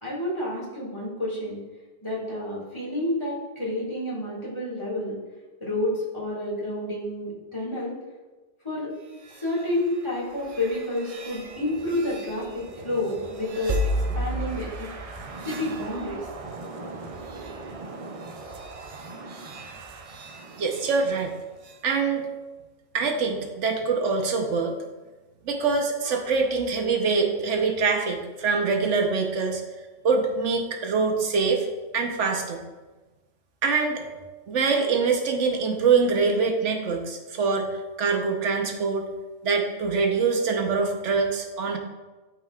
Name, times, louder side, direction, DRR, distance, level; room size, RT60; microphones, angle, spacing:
voice 1, 0.0-1.6 2.0-5.2 5.6-8.0 8.6-8.9 9.3-13.8 14.1-14.9 15.4-16.3, left 1 dB, 25° left, -7 dB, 2.2 m, -29 dB
sound 1, 9.0-21.9, equal, 50° right, 0.4 m, -35 dB
voice 2, 20.6-21.3 21.8-22.3 22.9-24.8 25.4-29.6 30.0-31.7 31.9-32.6 33.6-34.0 34.5-39.1 39.4-41.8, right 4 dB, 80° right, 3 dB, 1.2 m, -24 dB
11.0 x 4.6 x 2.4 m, 1.2 s
omnidirectional pair, 1.2 m